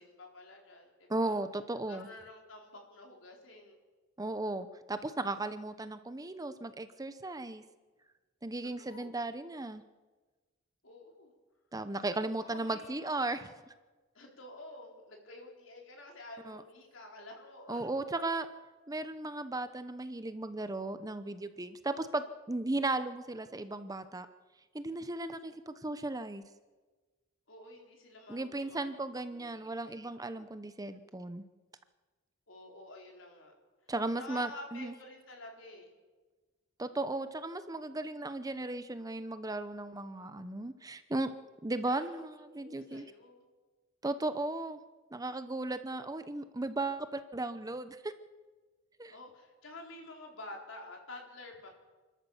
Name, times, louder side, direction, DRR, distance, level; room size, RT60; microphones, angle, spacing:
voice 1, 0.0-1.3 1.9-3.8 8.8-9.1 10.8-11.3 12.4-13.5 14.1-17.9 27.5-28.8 29.3-30.0 32.5-33.5 34.1-35.9 41.8-42.2 42.5-43.4 49.1-51.7, left 2 dB, 70° left, 1 dB, 4.4 m, -50 dB
voice 2, 1.1-2.1 4.2-7.6 8.4-9.8 11.7-13.4 16.5-16.6 17.7-18.5 18.9-24.3 24.7-26.4 28.3-31.4 33.9-34.9 36.8-41.3 41.6-43.1 44.0-44.8 45.1-48.1 49.0-49.1, right 2 dB, 20° right, 11 dB, 0.8 m, -36 dB
28.0 x 13.0 x 7.2 m, 1.3 s
head